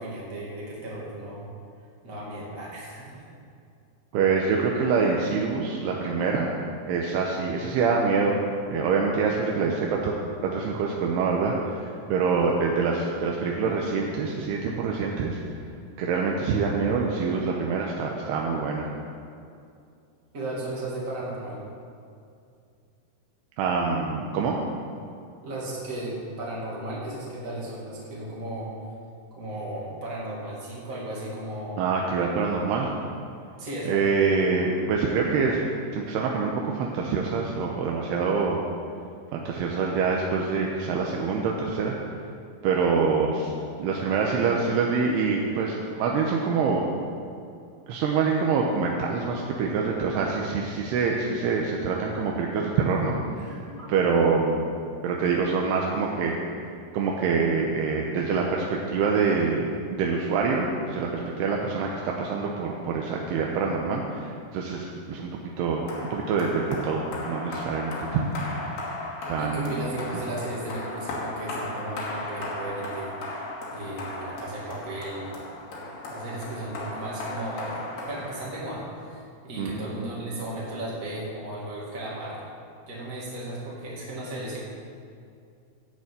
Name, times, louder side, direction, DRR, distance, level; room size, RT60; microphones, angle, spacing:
voice 1, 0.0-1.5 2.0-3.2 20.3-21.6 25.4-28.7 29.3-31.8 33.6-34.0 53.5-53.9 69.4-73.4 73.7-75.3 76.1-82.4 82.9-84.6, right 1 dB, 25° right, -5 dB, 2.1 m, -35 dB
voice 2, 4.1-6.5 6.9-8.4 8.7-10.1 10.4-15.4 16.0-18.9 23.6-24.6 31.8-32.9 33.9-35.6 35.9-38.6 39.3-42.0 42.6-43.5 43.8-46.8 47.9-53.5 53.9-54.6 55.0-56.4 56.9-65.3 65.6-68.3 69.3-69.8 79.6-79.8, right 5 dB, 85° right, -1 dB, 2.8 m, -25 dB
sound 1, 65.9-78.9, left 2 dB, 60° left, 3.4 m, -36 dB
13.0 x 5.5 x 8.3 m, 2.4 s
omnidirectional pair, 4.8 m